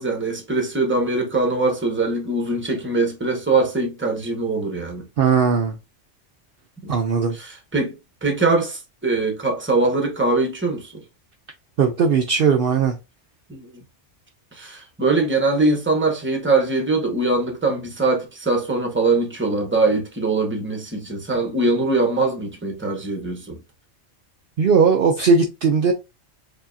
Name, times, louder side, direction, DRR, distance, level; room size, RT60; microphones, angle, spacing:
voice 1, 0.0-5.0 6.8-6.9 7.3-7.9 8.2-10.9 13.5-13.8 14.5-23.6, right 3 dB, 10° right, 0.9 m, -22 dB
voice 2, 5.2-5.8 6.9-7.4 11.8-13.0 24.6-25.9, right 5 dB, 60° right, 0.7 m, -18 dB
4.7 x 2.8 x 2.6 m
omnidirectional pair, 1.2 m